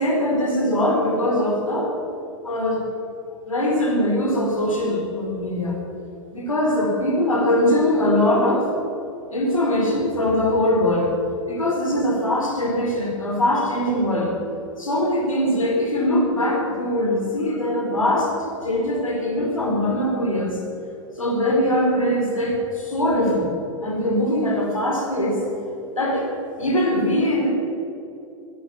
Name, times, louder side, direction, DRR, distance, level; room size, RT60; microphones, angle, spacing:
voice 1, 0.0-1.9 2.4-2.8 3.5-5.8 6.3-8.7 9.3-11.2 11.5-14.3 14.8-18.3 18.6-20.6 21.2-23.5 23.8-25.4 26.0-26.3 26.6-27.5, left 1 dB, 90° left, -1 dB, 4.5 m, -21 dB
21.0 x 11.0 x 6.0 m, 2.8 s
figure-of-eight pair, 100°, 17 cm